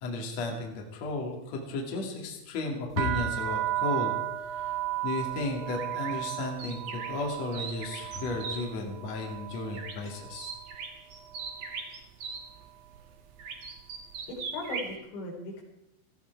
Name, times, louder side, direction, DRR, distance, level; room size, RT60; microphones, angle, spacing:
voice 1, 0.0-10.5, left 2 dB, 45° left, 0 dB, 2.7 m, -34 dB
sound 1, 2.9-10.8 11.1-11.8 12.4-12.7 12.9-14.4, right 14 dB, 75° right, 2.5 m, -35 dB
sound 2, 5.7-8.6 9.7-10.1 10.3-12.4 13.4-14.9, right 5 dB, 55° right, 1.8 m, -39 dB
voice 2, 14.3-15.6, left 2 dB, 65° left, -1 dB, 5.7 m, -38 dB
17.5 x 14.0 x 4.6 m, 0.86 s
omnidirectional pair, 5.4 m